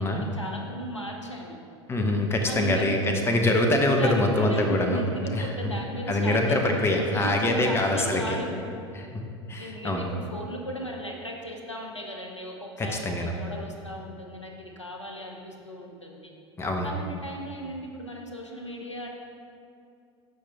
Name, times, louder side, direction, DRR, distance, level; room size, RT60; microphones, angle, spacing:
voice 1, 0.0-1.6 2.4-2.9 4.0-8.7 9.6-16.3 16.8-19.1, right 1 dB, 90° left, 1 dB, 0.9 m, -36 dB
voice 2, 1.9-5.0 5.3-5.5 6.1-8.4 8.9-9.2 9.5-10.1 12.8-13.3 16.6-16.9, left 1 dB, 15° left, 3 dB, 1.0 m, -24 dB
13.0 x 5.0 x 3.5 m, 2.4 s
figure-of-eight pair, 80°, 15 cm